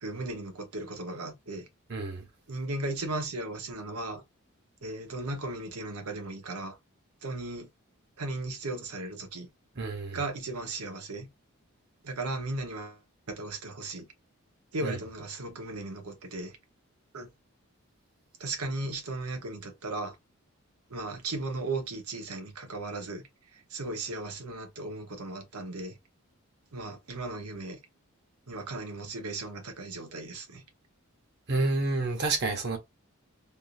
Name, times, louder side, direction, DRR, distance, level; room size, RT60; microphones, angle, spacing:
voice 1, 0.0-1.7 2.5-4.2 4.8-6.8 7.2-7.7 8.2-9.5 10.1-11.3 12.0-13.0 13.3-14.1 14.7-16.5 17.1-17.3 18.4-20.2 20.9-23.2 23.5-25.9 26.7-27.8 28.5-30.6, right 2 dB, 85° right, 0.9 m, -36 dB
voice 2, 1.9-2.2 9.8-10.2 14.8-15.0 31.5-32.8, right 3 dB, 50° right, 0.9 m, -29 dB
3.6 x 2.4 x 2.4 m
head